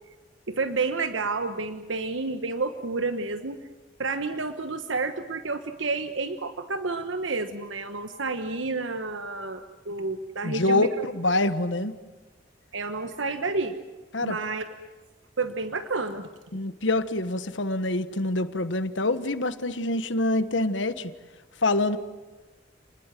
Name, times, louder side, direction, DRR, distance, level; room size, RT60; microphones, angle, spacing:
voice 1, 0.5-3.6 4.0-10.9 12.7-13.8 14.2-14.6 15.4-16.3, right 3 dB, 85° right, 9 dB, 1.3 m, -30 dB
voice 2, 10.4-11.9 14.1-14.4 16.5-21.1 21.6-22.0, left 2 dB, 75° left, 12 dB, 1.4 m, -25 dB
30.0 x 20.5 x 7.6 m, 1.3 s
head